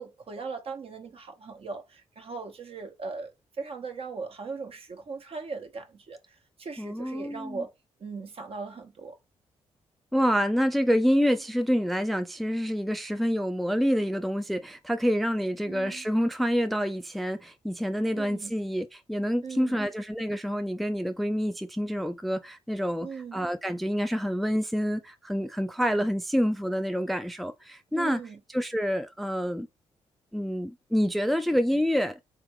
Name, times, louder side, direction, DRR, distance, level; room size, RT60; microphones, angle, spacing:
voice 1, 0.0-7.7 8.0-9.2 15.7-16.0 18.2-18.5 19.4-19.8 23.0-23.5 27.9-28.4, right 4 dB, 50° right, 1.2 m, -39 dB
voice 2, 6.8-7.6 10.1-28.2 28.5-29.7 30.3-32.2, equal, ahead, 0.4 m, -27 dB
3.7 x 3.4 x 3.1 m
supercardioid pair, 55°, 12 cm